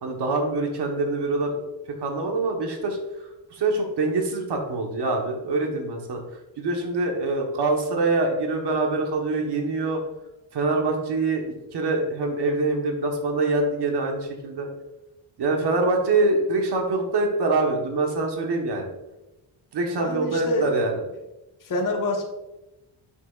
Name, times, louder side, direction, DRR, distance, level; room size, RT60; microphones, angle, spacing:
voice 1, 0.0-1.6 2.0-6.2 6.6-10.0 10.5-14.7 15.4-18.9 19.7-20.9, right 2 dB, 60° right, 2 dB, 1.3 m, -25 dB
voice 2, 19.8-20.7 21.6-22.2, left 1 dB, 45° left, 2 dB, 1.2 m, -27 dB
6.8 x 6.0 x 2.4 m, 1.0 s
cardioid pair, 115°, 44 cm